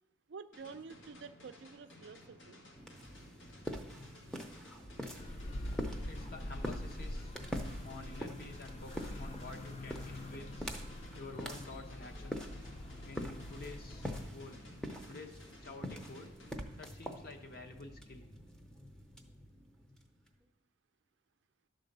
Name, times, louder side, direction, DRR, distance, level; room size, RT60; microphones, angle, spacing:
voice 1, 0.3-2.6, right 5 dB, 65° right, 11 dB, 0.4 m, -49 dB
sound 1, 0.5-16.5, left 1 dB, 80° left, 1.7 m, -57 dB
sound 2, 2.8-20.3, equal, 5° left, 0.7 m, -45 dB
sound 3, 5.2-14.3, left 1 dB, 35° left, 0.4 m, -45 dB
voice 2, 6.0-7.4 7.8-10.7 11.2-12.5 13.0-14.7 15.1-16.4 16.8-18.3, left 3 dB, 50° left, 2 dB, 1.0 m, -50 dB
11.0 x 4.0 x 6.7 m, 0.90 s
head